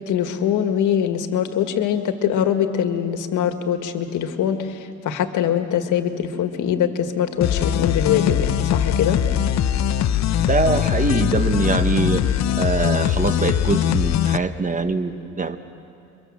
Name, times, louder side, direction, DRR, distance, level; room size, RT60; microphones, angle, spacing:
voice 1, 0.1-9.2, left 9 dB, 80° left, 7 dB, 1.8 m, -23 dB
sound 1, 7.4-14.4, left 10 dB, 65° left, 0.8 m, -21 dB
voice 2, 10.4-15.6, right 3 dB, 25° right, 9 dB, 1.4 m, -23 dB
29.5 x 23.5 x 7.4 m, 2.3 s
cardioid pair, 90°, 30 cm